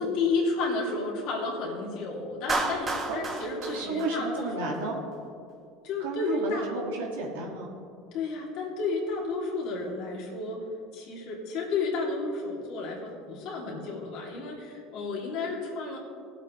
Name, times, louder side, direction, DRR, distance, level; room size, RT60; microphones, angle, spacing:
voice 1, 0.0-4.7 5.8-6.7 8.1-10.6 10.9-16.0, left 3 dB, 65° left, -3 dB, 2.7 m, -32 dB
Clapping, 2.5-4.8, right 2 dB, 30° right, 1.7 m, -31 dB
voice 2, 3.6-5.0 6.0-7.7, right 2 dB, 90° right, -2 dB, 2.0 m, -32 dB
17.0 x 8.2 x 3.2 m, 2.4 s
supercardioid pair, 95°, 0 cm